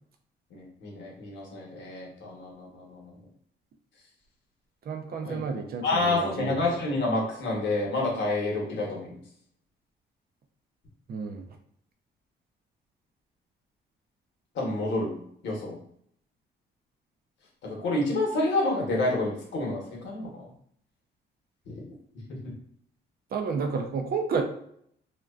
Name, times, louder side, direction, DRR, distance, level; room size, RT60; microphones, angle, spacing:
voice 1, 0.5-3.1 5.2-5.4 5.8-9.2 14.5-15.1 15.4-15.8 17.6-20.5 21.7-21.8 22.3-22.5, left 2 dB, 70° left, -2 dB, 1.0 m, -29 dB
voice 2, 4.9-6.6 11.1-11.4 23.3-24.4, right 5 dB, 50° right, 5 dB, 0.4 m, -31 dB
2.4 x 2.2 x 2.3 m, 0.67 s
cardioid pair, 90°, 20 cm